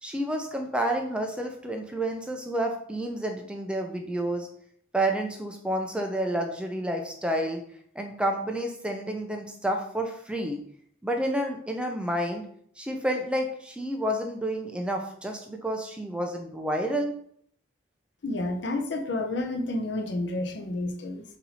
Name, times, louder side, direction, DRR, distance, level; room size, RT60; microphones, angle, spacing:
voice 1, 0.0-4.5 4.9-7.6 8.0-10.6 11.0-12.4 12.8-17.1, right 1 dB, 5° right, 3 dB, 0.4 m, -29 dB
voice 2, 18.2-21.2, left 2 dB, 65° left, 3 dB, 0.6 m, -30 dB
4.1 x 2.7 x 4.1 m, 0.64 s
head